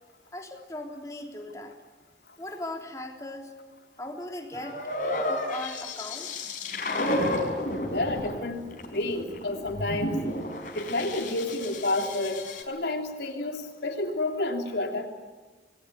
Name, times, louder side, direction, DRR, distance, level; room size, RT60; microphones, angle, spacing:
voice 1, 0.3-1.7 2.4-3.5 4.0-4.8 5.1-6.5, left 1 dB, 20° left, 2 dB, 3.4 m, -38 dB
sound 1, 4.5-12.6, left 1 dB, 50° left, 4.7 m, -32 dB
voice 2, 7.9-8.6 8.9-10.2 10.7-12.4 12.7-15.1, left 2 dB, 75° left, 3 dB, 3.2 m, -30 dB
28.0 x 20.5 x 9.4 m, 1.3 s
head